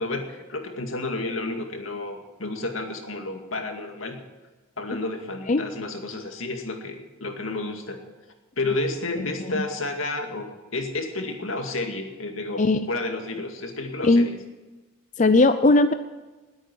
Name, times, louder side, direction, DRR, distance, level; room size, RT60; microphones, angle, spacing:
voice 1, 0.0-4.2 4.8-8.0 8.6-14.4, left 2 dB, 85° left, 4 dB, 2.3 m, -31 dB
voice 2, 15.2-15.9, left 2 dB, 35° left, 10 dB, 0.5 m, -18 dB
20.5 x 8.8 x 6.3 m, 1.2 s
head